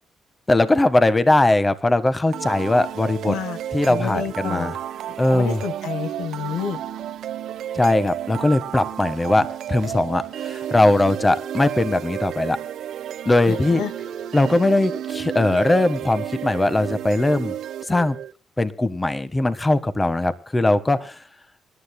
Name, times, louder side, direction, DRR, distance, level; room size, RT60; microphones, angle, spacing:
voice 1, 0.5-3.4 3.7-4.8 5.2-5.6 7.7-12.6 13.2-13.8 14.3-17.5 17.9-18.2 18.6-21.2, left 2 dB, 20° left, 13 dB, 1.4 m, -20 dB
sound 1, 2.3-18.3, right 10 dB, 75° right, 0.9 m, -32 dB
voice 2, 3.3-3.6 3.9-4.7 5.3-6.8 13.5-13.9, left 8 dB, 85° left, 12 dB, 1.2 m, -29 dB
27.0 x 12.0 x 2.2 m, 0.34 s
cardioid pair, 90°, 0 cm